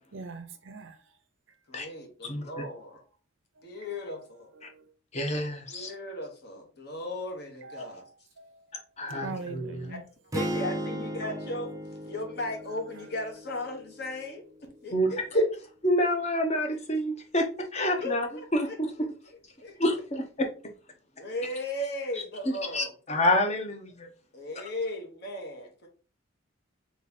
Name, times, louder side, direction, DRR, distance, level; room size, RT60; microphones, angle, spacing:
voice 1, 0.1-0.9 4.6-4.8 7.6-8.7 9.0-10.0, right 3 dB, 70° right, 0.7 m, -42 dB
voice 2, 1.7-3.0 3.6-4.5 5.7-8.0 9.1-9.3 9.9-10.0 10.3-11.7 12.0-15.4 18.0-18.2 18.6-18.8 19.6-19.8 21.2-22.9 24.3-25.9, left 1 dB, 55° left, 1.2 m, -36 dB
voice 3, 5.1-5.9 7.8-7.9 9.0-9.9 14.9-15.4 15.8-17.5 17.7-18.3 18.5-18.9 19.8-20.5 22.5-24.1, left 1 dB, 35° left, 0.9 m, -28 dB
sound 1, 10.3-14.5, right 1 dB, 15° right, 0.4 m, -36 dB
3.4 x 3.2 x 4.0 m
head